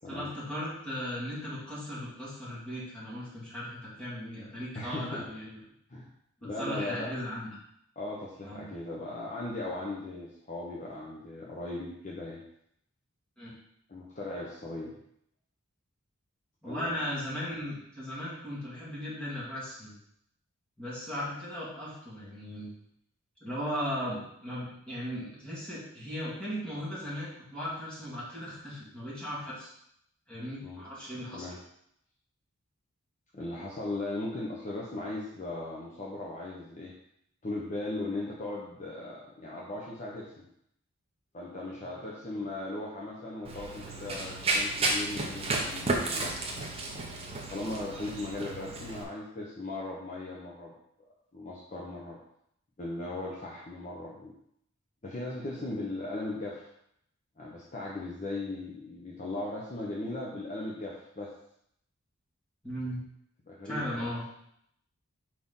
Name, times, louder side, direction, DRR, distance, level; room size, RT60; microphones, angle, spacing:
voice 1, 0.1-5.6 6.4-7.5 8.4-8.7 13.4-13.5 16.6-20.0 20.8-22.7 23.4-29.7 30.3-31.5 62.6-63.0 63.6-64.2, equal, 5° left, -9 dB, 2.3 m, -37 dB
voice 2, 4.7-5.3 5.9-6.1 6.4-7.1 8.0-12.4 13.9-15.0 16.7-16.9 30.6-30.8 31.3-31.6 33.3-36.9 37.4-40.5 41.3-46.5 47.5-50.7 51.3-52.2 52.8-54.3 55.0-56.7 57.4-61.3 63.5-64.1, left 2 dB, 35° left, -4 dB, 0.8 m, -38 dB
Run, 43.4-49.0, right 2 dB, 25° right, 0.9 m, -32 dB
4.6 x 4.3 x 5.5 m, 0.74 s
head